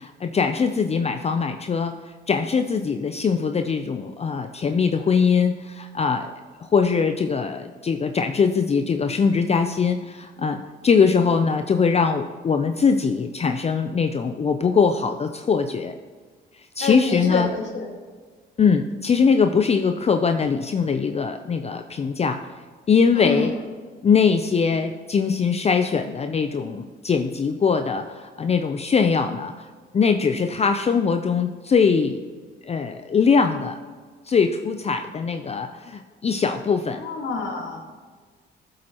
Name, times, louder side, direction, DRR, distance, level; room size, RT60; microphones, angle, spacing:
voice 1, 0.0-1.9 2.3-6.3 6.6-15.9 16.8-17.5 18.6-22.4 22.9-23.5 24.0-29.7 29.9-32.2 32.6-33.8 34.3-37.0, left 5 dB, 30° left, 7 dB, 0.5 m, -21 dB
voice 2, 16.8-17.9 23.1-23.5 36.9-37.8, left 4 dB, 70° left, 1 dB, 1.9 m, -27 dB
14.0 x 7.7 x 3.0 m, 1.5 s
cardioid pair, 90°, 20 cm